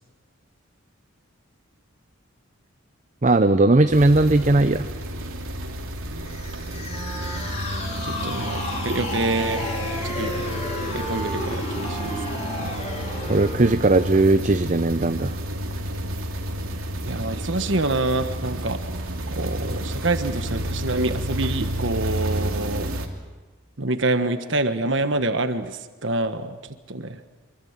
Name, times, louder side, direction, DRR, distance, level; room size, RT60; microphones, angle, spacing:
voice 1, 3.2-4.9 13.3-15.3, right 2 dB, 35° right, 9 dB, 0.7 m, -18 dB
sound 1, 3.9-23.1, right 1 dB, 85° right, 2.9 m, -30 dB
sound 2, 6.2-13.7, left 2 dB, 30° left, 3.5 m, -33 dB
Wind instrument woodwind instrument, 6.9-14.3, right 1 dB, 5° left, 3.8 m, -37 dB
voice 2, 8.0-9.7 10.0-10.4 10.9-12.7 17.0-18.8 19.3-22.9 23.8-26.6 26.9-27.2, right 2 dB, 60° right, 9 dB, 1.4 m, -26 dB
25.5 x 24.0 x 7.5 m, 1.3 s
head